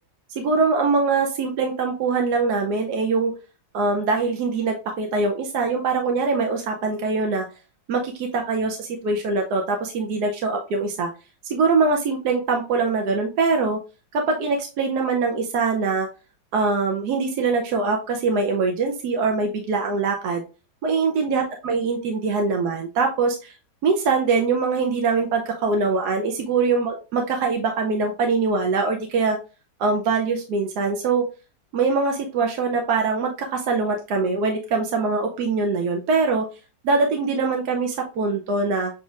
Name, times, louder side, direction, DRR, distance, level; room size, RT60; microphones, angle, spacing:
voice 1, 0.4-3.3 3.7-7.5 7.9-11.1 11.4-13.8 14.1-16.1 16.5-20.4 20.8-23.5 23.8-29.4 29.8-31.2 31.7-36.5 36.8-38.9, right 4 dB, 70° right, 2 dB, 1.2 m, -23 dB
7.2 x 2.9 x 2.4 m, 0.32 s
omnidirectional pair, 1.9 m